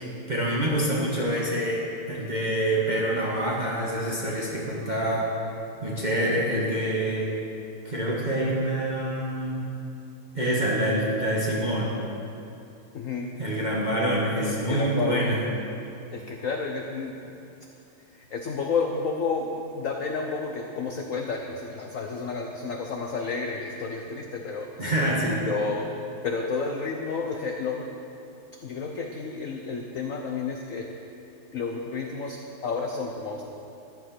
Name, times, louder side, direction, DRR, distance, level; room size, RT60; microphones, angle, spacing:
voice 1, 0.3-5.3 5.8-7.3 7.8-9.6 10.3-12.0 13.4-15.5 24.8-25.4, right 1 dB, 25° right, -5 dB, 1.7 m, -26 dB
voice 2, 12.9-13.3 14.7-15.4 16.1-17.3 18.1-24.7 25.4-25.9 26.2-28.0 28.6-30.9 31.5-33.4, left 4 dB, 55° left, 2 dB, 1.0 m, -31 dB
14.0 x 11.0 x 6.1 m, 2.7 s
omnidirectional pair, 2.2 m